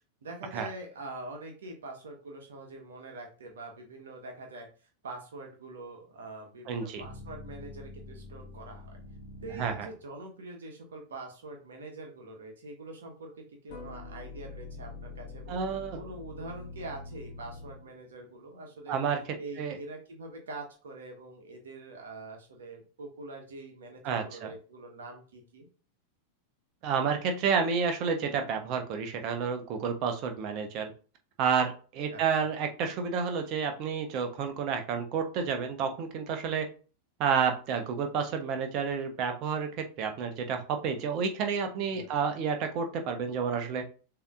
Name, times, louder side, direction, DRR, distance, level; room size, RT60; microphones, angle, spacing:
voice 1, 0.2-4.7 5.0-9.0 9.4-15.6 16.0-19.0 19.4-25.7 32.1-32.2 41.9-42.2, right 2 dB, 65° right, 2 dB, 1.2 m, -44 dB
voice 2, 6.7-7.0 9.5-9.9 15.5-16.0 18.9-19.2 19.6-19.8 24.0-24.5 26.8-30.9 31.4-36.7 37.2-43.9, right 6 dB, 40° right, 5 dB, 1.0 m, -30 dB
sound 1, 7.0-10.1 13.7-18.3, left 3 dB, 45° left, 1.1 m, -45 dB
6.8 x 2.9 x 2.5 m, 0.37 s
figure-of-eight pair, 90°, 0 cm